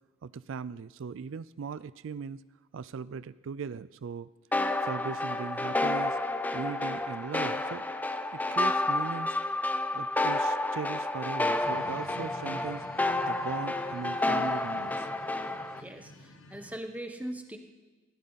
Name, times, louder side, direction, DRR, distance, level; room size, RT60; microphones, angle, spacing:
voice 1, 0.2-2.4 2.7-4.3 4.8-6.2 6.5-7.8 8.3-9.4 9.9-12.8 13.2-15.1, right 6 dB, 70° right, 17 dB, 0.4 m, -39 dB
sound 1, 4.5-15.8, left 2 dB, 10° left, 0.4 m, -30 dB
sound 2, 11.6-16.8, left 2 dB, 85° left, 1.4 m, -48 dB
voice 2, 15.8-17.6, right 1 dB, 5° right, 5 dB, 1.1 m, -40 dB
21.5 x 15.0 x 4.0 m, 1.3 s
head